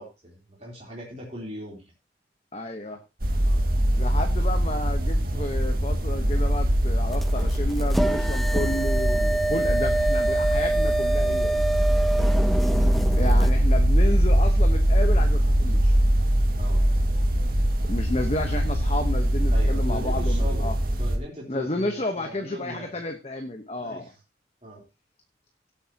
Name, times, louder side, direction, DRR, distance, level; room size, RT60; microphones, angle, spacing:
voice 1, 0.0-1.9 3.4-3.7 12.1-12.7 16.6-16.9 19.5-23.0 23.8-24.1 24.6-24.8, equal, 35° right, -3 dB, 3.8 m, -39 dB
voice 2, 2.5-3.0 4.0-11.6 13.2-15.9 17.8-20.7 21.5-24.1, left 1 dB, 35° left, 5 dB, 1.2 m, -31 dB
sound 1, 3.2-21.2, equal, 55° right, 2.2 m, -22 dB
sound 2, 7.1-13.5, right 2 dB, ahead, 0.6 m, -26 dB
17.5 x 8.2 x 3.0 m, 0.27 s
head